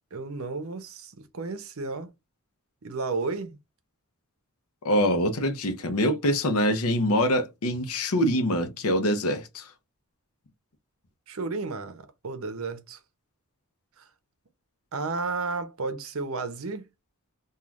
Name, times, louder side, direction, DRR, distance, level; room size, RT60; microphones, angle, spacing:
voice 1, 0.1-2.1 2.8-3.6 11.3-13.0 14.0-14.1 14.9-16.9, right 3 dB, 70° right, 0.7 m, -33 dB
voice 2, 4.8-9.7, equal, 75° left, 0.6 m, -24 dB
3.2 x 2.4 x 2.4 m
head